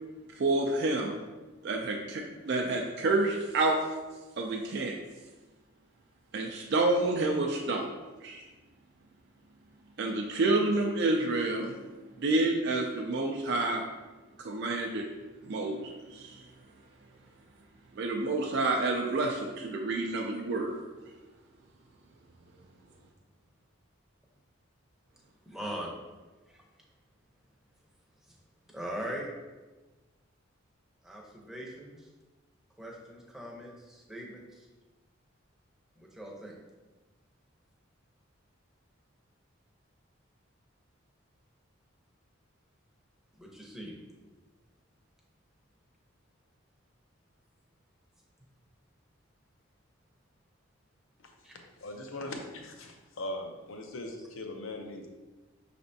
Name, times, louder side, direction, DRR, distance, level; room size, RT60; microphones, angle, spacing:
voice 1, 0.4-1.2 1.6-3.8 4.4-5.0 6.3-7.9 8.2-8.4 10.0-11.7 12.2-13.9 14.4-15.1 15.4-16.4 18.0-20.8, right 2 dB, 55° right, 1 dB, 0.4 m, -29 dB
voice 2, 25.5-25.9 26.5-26.6 28.7-29.3 31.0-32.1 32.8-34.7 36.0-36.5 43.4-43.9 51.4-51.6, equal, ahead, -2 dB, 0.6 m, -41 dB
voice 3, 51.8-55.1, left 1 dB, 75° left, 3 dB, 0.6 m, -40 dB
5.9 x 3.3 x 2.7 m, 1.2 s
head